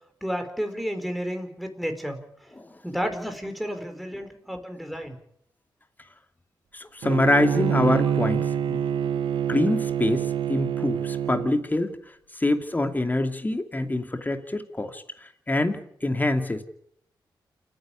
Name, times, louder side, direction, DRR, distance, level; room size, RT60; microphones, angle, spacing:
voice 1, 0.2-2.5 2.8-5.2, equal, ahead, 5 dB, 4.8 m, -32 dB
voice 2, 6.7-8.8 9.5-12.0 12.3-16.6, left 2 dB, 20° left, 7 dB, 2.7 m, -25 dB
Bowed string instrument, 7.0-11.6, right 9 dB, 85° right, 0.9 m, -26 dB
28.5 x 10.5 x 8.6 m, 0.69 s
cardioid pair, 70°, 9 cm